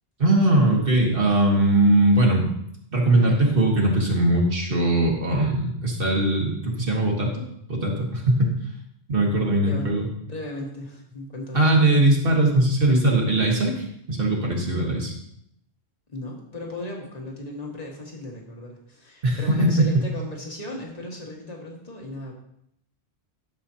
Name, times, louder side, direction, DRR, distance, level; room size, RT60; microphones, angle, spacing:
voice 1, 0.2-2.5 2.9-7.4 7.7-8.5 9.1-10.1 11.5-15.1 19.2-20.0, right 1 dB, 55° right, -1 dB, 1.8 m, -20 dB
voice 2, 10.2-11.7 16.1-22.3, left 2 dB, 35° left, -1 dB, 1.7 m, -36 dB
11.5 x 6.9 x 2.8 m, 0.74 s
omnidirectional pair, 1.1 m